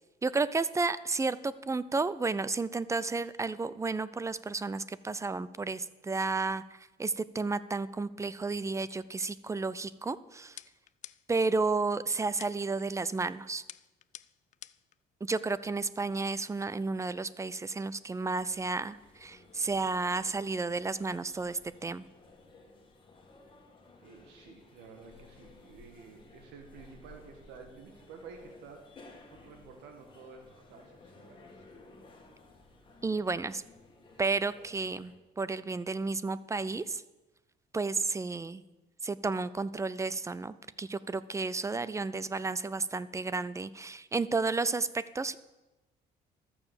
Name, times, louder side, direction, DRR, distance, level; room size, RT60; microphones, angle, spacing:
voice 1, 0.2-10.6 11.3-13.6 15.2-22.1 33.0-33.6 34.2-37.0 37.7-38.6 39.0-45.4, right 3 dB, 15° right, 17 dB, 0.5 m, -32 dB
sound 1, 10.6-11.5 12.4-12.8 13.7-15.0, left 11 dB, 45° left, 0.4 m, -49 dB
sound 2, 18.4-35.2, left 3 dB, 30° left, 2.1 m, -56 dB
voice 2, 24.0-28.8 29.3-31.7, right 5 dB, 85° right, 4 dB, 1.7 m, -51 dB
13.5 x 7.0 x 7.1 m, 1.1 s
cardioid pair, 110°, 17 cm